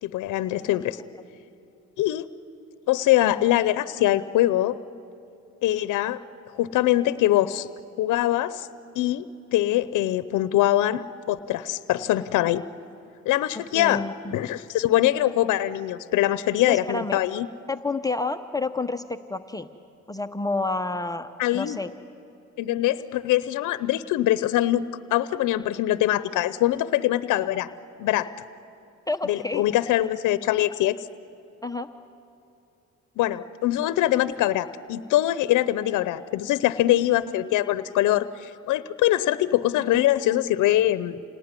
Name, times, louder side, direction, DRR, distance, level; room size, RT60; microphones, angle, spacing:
voice 1, 0.0-1.0 2.0-2.3 2.9-4.7 5.6-6.2 6.5-7.7 8.0-8.7 9.0-9.2 9.5-12.6 13.2-14.0 14.3-17.5 21.4-21.8 22.6-24.8 25.1-27.7 28.0-28.3 29.3-31.0 33.2-41.2, left 14 dB, 90° left, 15 dB, 0.7 m, -23 dB
voice 2, 13.6-14.4 16.7-17.2 17.7-19.7 20.1-21.9 29.1-29.6 30.6-30.7 31.6-31.9, left 3 dB, 10° left, 6 dB, 0.8 m, -29 dB
27.5 x 19.0 x 9.7 m, 2.8 s
cardioid pair, 90°, 30 cm